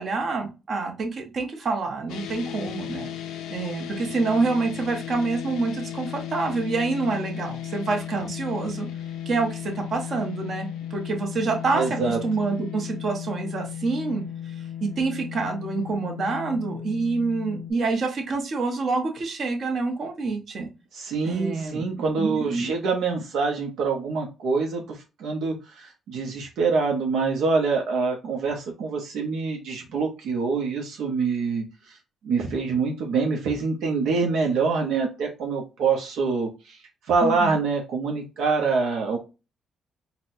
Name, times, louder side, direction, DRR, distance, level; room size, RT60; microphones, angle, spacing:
voice 1, 0.0-3.1 3.5-8.9 9.3-14.2 14.8-20.7 21.2-21.8 22.2-22.7 37.2-37.6, right 3 dB, 50° right, 3 dB, 0.9 m, -27 dB
sound 1, 2.1-17.7, left 10 dB, 90° left, 0.5 m, -35 dB
voice 2, 11.7-12.2 20.9-32.0 32.2-36.8 37.1-39.2, right 4 dB, 80° right, 1 dB, 0.7 m, -25 dB
4.0 x 2.1 x 2.5 m, 0.29 s
cardioid pair, 90°, 0 cm